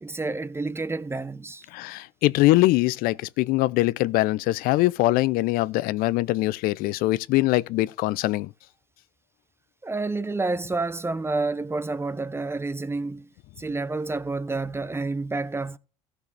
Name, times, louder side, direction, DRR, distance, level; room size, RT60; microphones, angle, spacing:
voice 1, 0.0-1.7 9.8-13.3 13.6-15.8, right 3 dB, 15° right, 0.7 m, -29 dB
voice 2, 1.7-8.5, left 18 dB, 65° left, 0.5 m, -22 dB
15.5 x 6.3 x 3.3 m
hypercardioid pair, 80°, 16 cm